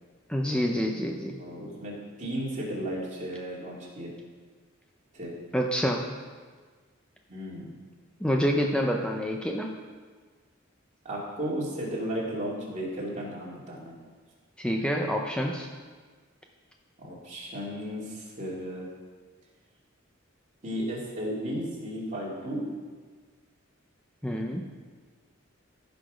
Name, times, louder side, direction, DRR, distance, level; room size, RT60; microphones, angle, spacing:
voice 1, 0.3-1.4 5.5-6.2 8.2-9.7 14.6-15.7 24.2-24.7, equal, 5° left, 1 dB, 0.6 m, -27 dB
voice 2, 1.4-4.1 5.1-5.3 7.3-7.7 11.0-14.0 17.0-18.9 20.6-22.7, equal, 35° right, -4 dB, 2.7 m, -34 dB
15.0 x 6.0 x 5.1 m, 1.5 s
head